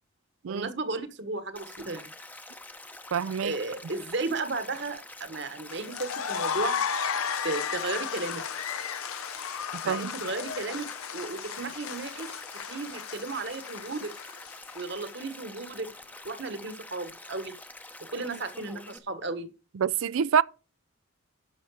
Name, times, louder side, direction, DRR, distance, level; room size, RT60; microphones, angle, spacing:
voice 1, 0.5-2.1 3.4-6.8 7.4-8.4 9.8-12.3 12.7-14.1 14.7-15.9 16.2-17.5 18.1-19.5, right 3 dB, 55° right, 1.3 m, -34 dB
Stream, 1.5-19.0, left 2 dB, 10° left, 0.7 m, -46 dB
voice 2, 3.1-3.5 9.7-10.1 19.8-20.4, right 7 dB, 75° right, 0.4 m, -26 dB
sound 1, 5.7-15.0, left 7 dB, 90° left, 0.8 m, -34 dB
11.5 x 5.8 x 4.8 m
head